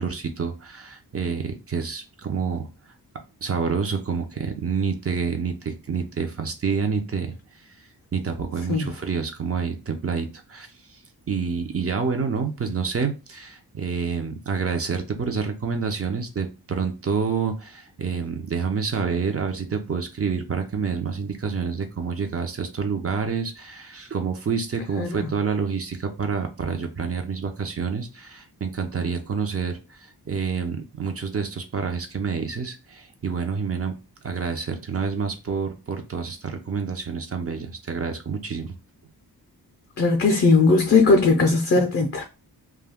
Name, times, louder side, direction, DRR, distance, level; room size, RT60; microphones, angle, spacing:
voice 1, 0.0-2.7 3.4-7.3 8.1-10.7 11.3-34.0 34.2-38.8, right 5 dB, 35° right, 0.6 m, -28 dB
voice 2, 25.0-25.3 40.0-42.2, left 3 dB, 40° left, 0.5 m, -19 dB
2.3 x 2.2 x 3.5 m
wide cardioid pair, 80°, 39 cm